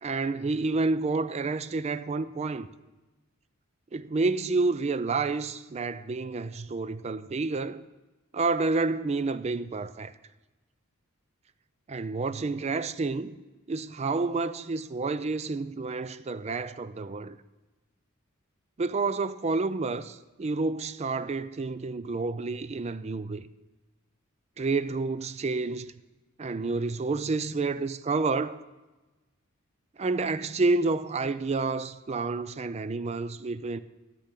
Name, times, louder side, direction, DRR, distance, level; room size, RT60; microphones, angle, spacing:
voice 1, 0.0-2.7 3.9-7.8 8.3-10.1 11.9-13.4 13.7-17.4 18.8-23.4 24.6-25.9 26.4-28.6 30.0-33.8, right 3 dB, 30° right, 0.4 m, -29 dB
11.5 x 6.9 x 8.2 m
head